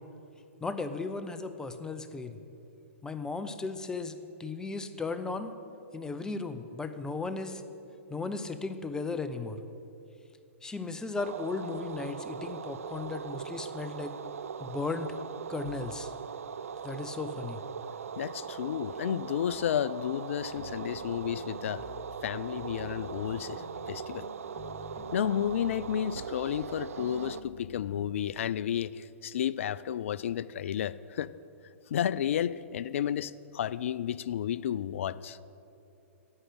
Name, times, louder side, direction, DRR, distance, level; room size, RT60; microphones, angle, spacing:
voice 1, 0.6-2.4 3.0-5.5 5.9-7.6 8.1-9.6 10.6-14.1 14.6-15.1 15.5-16.1 16.8-17.6, left 3 dB, 10° left, 10 dB, 0.6 m, -36 dB
sound 1, 11.2-27.4, right 7 dB, 75° right, 0.5 m, -40 dB
voice 2, 18.2-21.8 22.2-23.6 23.9-24.3 25.1-31.3 31.9-35.4, left 10 dB, 65° left, 18 dB, 0.4 m, -32 dB
sound 2, 20.3-22.2 22.5-28.2, left 5 dB, 35° left, 1.0 m, -50 dB
11.0 x 8.1 x 7.9 m, 2.8 s
hypercardioid pair, 120°, 8 cm